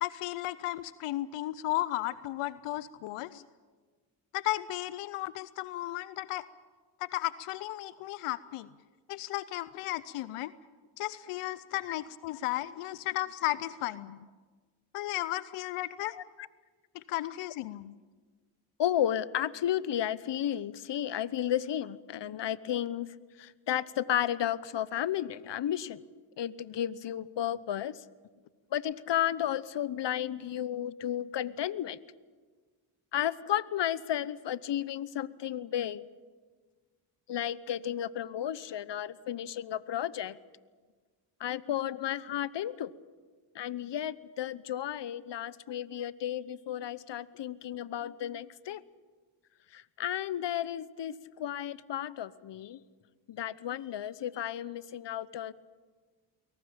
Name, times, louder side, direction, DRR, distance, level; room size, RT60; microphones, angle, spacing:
voice 1, 0.0-3.4 4.3-6.5 7.0-8.7 9.1-10.5 11.0-14.3 14.9-16.2 16.9-17.9, left 16 dB, 90° left, 17 dB, 0.7 m, -34 dB
voice 2, 16.0-16.5 18.8-23.1 23.4-26.0 26.4-28.0 28.7-32.0 33.1-36.0 37.3-40.4 41.4-42.9 43.5-48.8 49.7-52.8 53.3-55.5, left 11 dB, 55° left, 18 dB, 1.0 m, -33 dB
23.0 x 18.5 x 8.7 m, 1.4 s
supercardioid pair, 55°, 49 cm